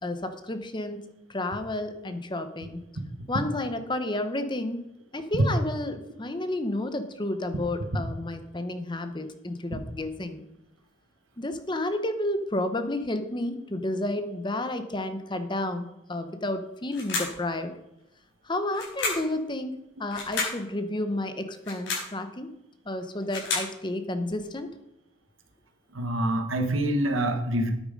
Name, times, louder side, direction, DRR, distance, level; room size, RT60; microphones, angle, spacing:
voice 1, 0.0-1.0 1.3-2.8 3.3-10.4 11.4-17.7 18.4-19.7 20.0-22.5 22.8-24.7, left 1 dB, 25° left, 9 dB, 0.8 m, -31 dB
sound 1, 16.9-17.4 18.7-19.3 20.1-20.6 21.6-22.1 23.0-23.7, left 4 dB, 65° left, 5.1 m, -31 dB
voice 2, 25.9-27.7, right 1 dB, 90° right, 6 dB, 1.5 m, -26 dB
9.8 x 8.8 x 5.3 m, 0.86 s
head